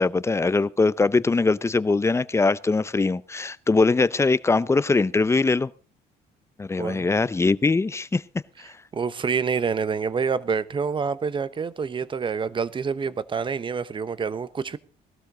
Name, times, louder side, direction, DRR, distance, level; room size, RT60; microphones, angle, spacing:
voice 1, 0.0-5.7 6.6-8.2, left 3 dB, 15° left, 0.6 m, -22 dB
voice 2, 8.9-14.8, right 5 dB, 30° right, 1.0 m, -27 dB
19.0 x 13.0 x 3.8 m
cardioid pair, 110°, 17 cm